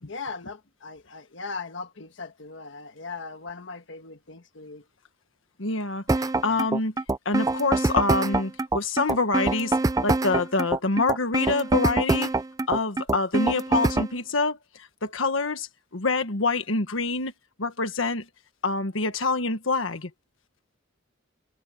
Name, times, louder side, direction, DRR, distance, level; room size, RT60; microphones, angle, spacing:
voice 1, 0.0-4.8, left 4 dB, 65° left, 1.6 m, -39 dB
voice 2, 5.6-6.9 7.2-9.8 10.0-12.3 12.7-17.3 17.6-18.2 18.6-20.1, left 3 dB, 85° left, 1.5 m, -26 dB
sound 1, 6.1-14.1, right 2 dB, 20° right, 0.4 m, -24 dB
head